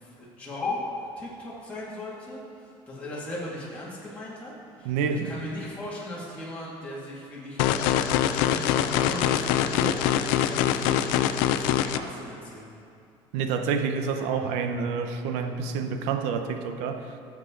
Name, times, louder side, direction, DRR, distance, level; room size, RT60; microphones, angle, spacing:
voice 1, 0.0-12.6, left 1 dB, 10° left, -8 dB, 2.1 m, -37 dB
voice 2, 4.8-5.3 13.3-17.0, right 6 dB, 80° right, 7 dB, 0.8 m, -28 dB
sound 1, 7.6-12.0, left 10 dB, 85° left, 0.4 m, -24 dB
13.5 x 7.3 x 3.8 m, 2.5 s
cardioid pair, 120°, 11 cm